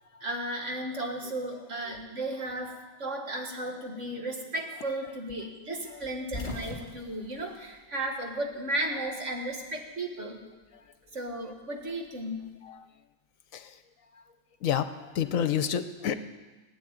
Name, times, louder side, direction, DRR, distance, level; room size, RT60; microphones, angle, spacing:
voice 1, 0.2-10.4 11.1-12.5, right 1 dB, 55° right, 2 dB, 2.2 m, -34 dB
voice 2, 4.7-5.1 5.9-6.0 8.2-8.3 8.9-9.4 12.6-12.8 13.5-13.7 14.6-14.9 15.1-16.1, left 9 dB, 70° left, 11 dB, 1.1 m, -30 dB
Car accident. Real. Interior., 6.0-8.5 8.8-9.9 11.1-12.6, left 2 dB, 35° left, 2.4 m, -42 dB
16.5 x 9.3 x 8.9 m, 1.2 s
omnidirectional pair, 1.5 m